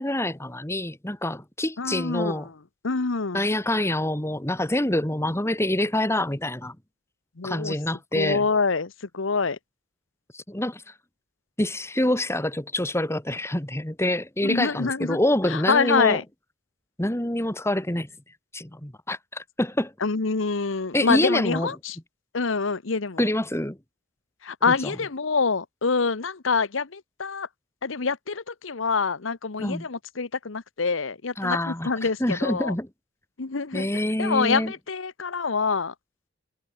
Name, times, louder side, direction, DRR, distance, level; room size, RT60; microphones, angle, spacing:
voice 1, 0.0-2.5 3.3-6.8 7.4-8.5 10.3-10.8 11.6-16.2 17.0-18.1 18.5-19.9 20.9-21.7 23.2-23.8 24.7-24.9 29.6-29.9 31.4-32.9 33.7-34.7, left 1 dB, 15° left, 2.5 m, -26 dB
voice 2, 1.8-2.4 2.8-3.5 7.4-7.7 8.1-9.6 14.4-15.2 15.5-16.2 20.0-22.0 22.3-23.3 24.4-27.5 27.8-32.7 33.4-33.9 34.2-35.9, left 4 dB, 80° left, 1.0 m, -26 dB
head